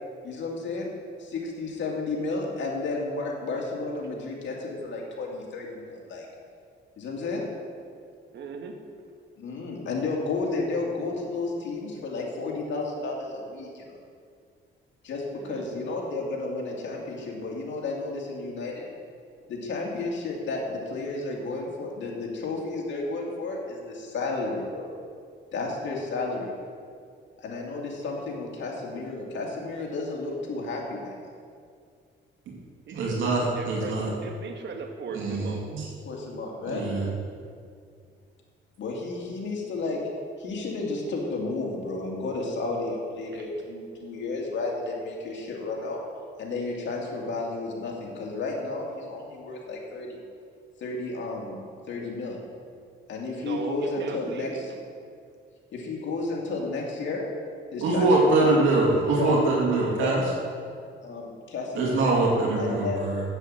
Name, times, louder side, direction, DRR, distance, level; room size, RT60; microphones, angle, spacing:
voice 1, 0.2-0.9 1.2-6.3 7.0-7.4 9.4-14.0 15.0-18.9 19.5-24.9 25.5-26.5 27.4-31.3 36.1-36.9 38.8-40.0 40.4-46.0 46.4-50.2 50.8-52.4 53.1-54.7 55.7-57.3 57.7-59.4 60.0-60.2 61.0-62.1 62.6-63.0, left 3 dB, 65° left, -2 dB, 2.4 m, -32 dB
voice 2, 8.3-8.8 15.4-15.7 32.9-35.7 43.3-43.4 53.3-54.7 58.1-58.4, right 4 dB, 60° right, 4 dB, 1.4 m, -38 dB
voice 3, 32.9-34.1 35.1-35.9 36.7-37.0 57.8-60.2 61.8-63.2, right 2 dB, 80° right, -3 dB, 2.3 m, -23 dB
8.0 x 7.8 x 7.4 m, 2.2 s
cardioid pair, 90°, 20 cm